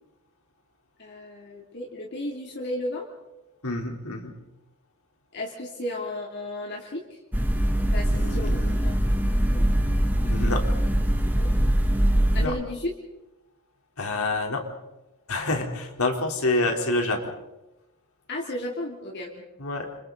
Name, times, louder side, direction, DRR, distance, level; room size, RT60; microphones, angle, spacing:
voice 1, 1.0-3.1 5.3-7.2 7.9-9.0 9.2-9.6 11.3-11.5 12.3-12.9 18.3-19.3, left 1 dB, 55° left, -1 dB, 2.9 m, -34 dB
voice 2, 3.6-4.3 8.1-8.8 10.2-10.6 12.4-12.5 14.0-14.7 15.3-17.3 19.6-19.9, left 2 dB, 80° left, 2 dB, 3.7 m, -27 dB
sound 1, 7.3-12.5, right 1 dB, 10° right, 2.5 m, -22 dB
30.0 x 27.0 x 4.0 m, 0.96 s
head